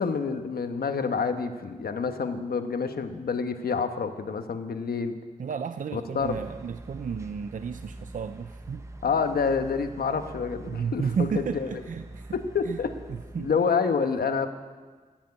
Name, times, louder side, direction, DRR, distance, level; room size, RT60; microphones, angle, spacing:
voice 1, 0.0-5.2 5.9-6.4 9.0-11.7 12.3-12.9 13.4-14.5, left 5 dB, 85° left, 7 dB, 1.1 m, -28 dB
voice 2, 5.4-8.9 10.7-12.3 12.6-12.8 13.1-13.5, right 6 dB, 60° right, 10 dB, 0.5 m, -32 dB
sound 1, 6.2-13.5, right 1 dB, 20° right, 0.8 m, -44 dB
15.0 x 9.2 x 9.7 m, 1.4 s
wide cardioid pair, 150°, 15 cm